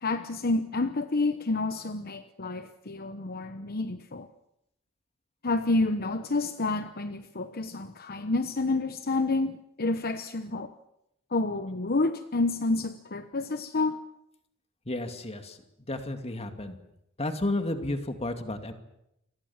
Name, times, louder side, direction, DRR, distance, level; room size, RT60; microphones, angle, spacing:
voice 1, 0.0-4.3 5.4-10.7 11.3-14.0, left 2 dB, 45° left, 10 dB, 1.0 m, -29 dB
voice 2, 14.9-15.6 15.9-16.8 17.2-18.7, left 1 dB, 30° left, 7 dB, 2.6 m, -32 dB
28.5 x 24.5 x 7.4 m, 0.83 s
head